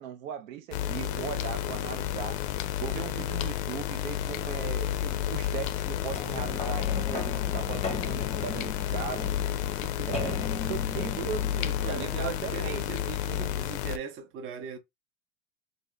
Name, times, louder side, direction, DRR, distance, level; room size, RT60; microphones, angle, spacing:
voice 1, 0.0-2.4 2.8-9.3 10.0-13.5, right 9 dB, 70° right, 0.6 m, -38 dB
sound 1, 0.7-14.0, left 11 dB, 55° left, 0.5 m, -31 dB
voice 2, 2.9-3.5 9.8-10.2 11.8-14.8, right 7 dB, 30° right, 0.7 m, -40 dB
sound 2, 6.1-12.9 13.5-13.6, left 4 dB, 15° left, 0.7 m, -38 dB
2.7 x 2.6 x 3.2 m
hypercardioid pair, 110°, 41 cm